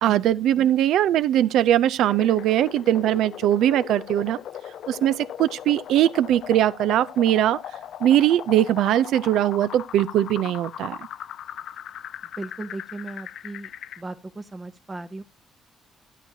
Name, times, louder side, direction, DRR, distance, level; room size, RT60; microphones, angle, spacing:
voice 1, 0.0-4.4 4.9-7.6 8.0-11.1, right 12 dB, 85° right, 0.4 m, -21 dB
sound 1, 2.0-14.0, left 10 dB, 75° left, 0.4 m, -39 dB
voice 2, 12.4-13.7 14.0-15.2, right 2 dB, 25° right, 0.7 m, -37 dB
12.5 x 8.8 x 2.8 m
cardioid pair, 90°, 0 cm